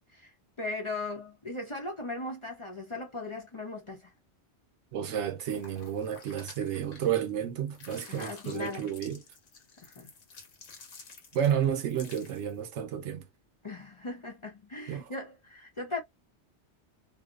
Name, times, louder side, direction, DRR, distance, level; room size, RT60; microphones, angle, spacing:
voice 1, 0.1-4.1 8.1-8.9 9.8-10.1 13.6-16.0, left 2 dB, 35° left, 0.6 m, -38 dB
voice 2, 4.9-9.2 11.3-13.3 14.9-15.1, right 9 dB, 80° right, 0.9 m, -31 dB
sound 1, 5.4-7.4 7.7-12.6, left 4 dB, 70° left, 1.2 m, -51 dB
2.7 x 2.0 x 2.3 m
omnidirectional pair, 1.2 m